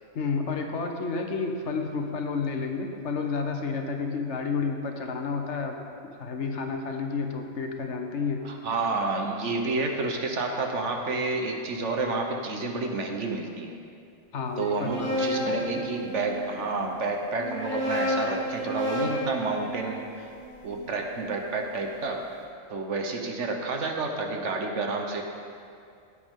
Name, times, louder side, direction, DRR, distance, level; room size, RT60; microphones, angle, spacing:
voice 1, 0.1-8.4 14.3-15.8, left 4 dB, 65° left, 3 dB, 1.3 m, -31 dB
voice 2, 8.4-13.8 14.6-20.3 20.6-22.2 22.7-25.2, right 3 dB, 70° right, 2 dB, 1.3 m, -30 dB
sound 1, 14.6-16.5 17.3-21.5, equal, 10° left, 2.1 m, -32 dB
16.5 x 8.2 x 3.7 m, 2.4 s
omnidirectional pair, 1.3 m